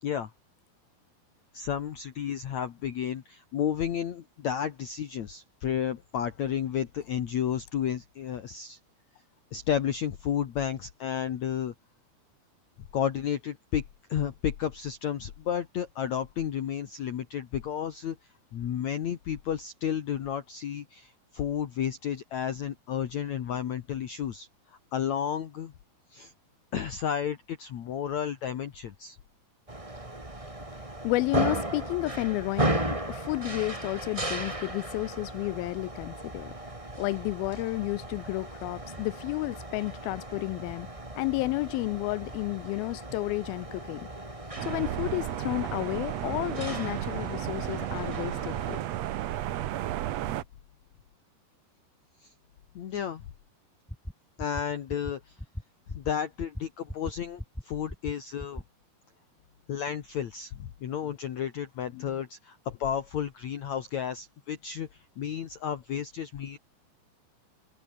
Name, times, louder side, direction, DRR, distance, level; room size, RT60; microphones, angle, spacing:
voice 1, 1.5-8.8 9.5-11.7 12.9-13.8 14.1-18.2 18.5-24.5 24.9-25.7 26.1-26.3 26.7-29.2 52.2-52.3 52.8-53.2 54.4-55.4 55.9-58.6 59.7-66.6, left 9 dB, 55° left, 2.4 m, -32 dB
sound 1, 29.7-48.8, right 1 dB, 10° right, 2.4 m, -36 dB
voice 2, 31.0-36.5 37.0-40.9 41.2-44.1 44.6-48.9 61.9-62.1, left 21 dB, 80° left, 2.3 m, -31 dB
sound 2, 44.6-50.4, right 13 dB, 85° right, 1.4 m, -33 dB
sound 3, 53.9-54.1 54.4-54.6 54.9-55.1 55.4-55.6 55.9-56.1 56.4-56.6 56.9-57.1 57.4-57.6 57.9-58.1 58.4-58.6, equal, 5° left, 0.6 m, -37 dB
omnidirectional pair, 4.5 m